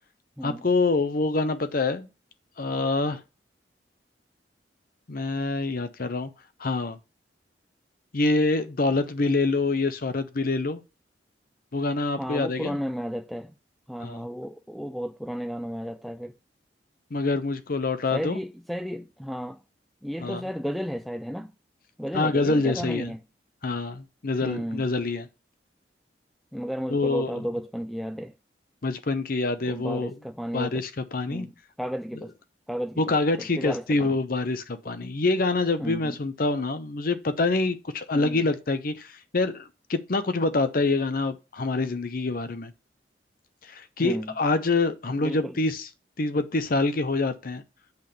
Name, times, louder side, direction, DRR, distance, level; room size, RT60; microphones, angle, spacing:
voice 1, 0.4-2.1 2.6-3.2 5.1-6.3 6.6-7.0 8.1-10.8 11.7-12.8 14.0-14.3 17.1-18.4 20.2-20.4 22.1-23.1 23.6-25.3 26.9-27.3 28.8-30.1 30.5-31.5 33.0-42.7 43.6-45.9 46.2-47.6, left 3 dB, 55° left, 0.8 m, -26 dB
voice 2, 12.1-13.5 13.9-16.3 18.1-19.6 20.0-21.5 22.0-23.2 24.4-24.9 26.5-28.3 29.6-30.8 31.3-32.3 32.7-34.2 35.8-36.2 38.1-38.4 44.0-44.4 45.2-45.5, equal, ahead, 0.3 m, -33 dB
8.1 x 3.5 x 6.6 m
head